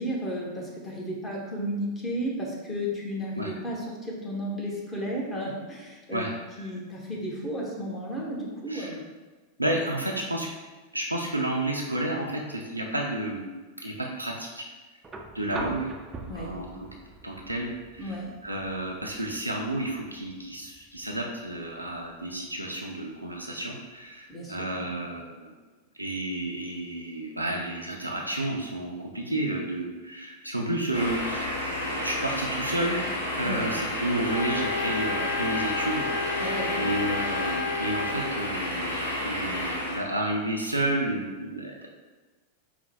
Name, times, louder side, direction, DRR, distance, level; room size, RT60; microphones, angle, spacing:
voice 1, 0.0-9.0 15.6-15.7 16.3-16.6 18.0-18.3 24.3-25.2 33.4-33.7 36.4-36.9, equal, 15° left, -3 dB, 1.0 m, -33 dB
voice 2, 9.6-10.5 10.9-13.4 13.8-14.7 15.3-15.9 16.3-16.9 17.2-18.2 18.4-25.5 26.0-31.5 31.8-33.0 33.4-39.0 39.2-41.9, right 1 dB, 90° right, -2 dB, 0.5 m, -31 dB
sound 1, 15.0-23.1 24.5-24.6, right 3 dB, 20° right, 0.4 m, -44 dB
sound 2, 30.9-40.0, left 1 dB, 80° left, 1.1 m, -31 dB
sound 3, 34.2-38.3, left 4 dB, 50° left, 1.0 m, -31 dB
4.7 x 2.1 x 4.2 m, 1.3 s
figure-of-eight pair, 90°, 0 cm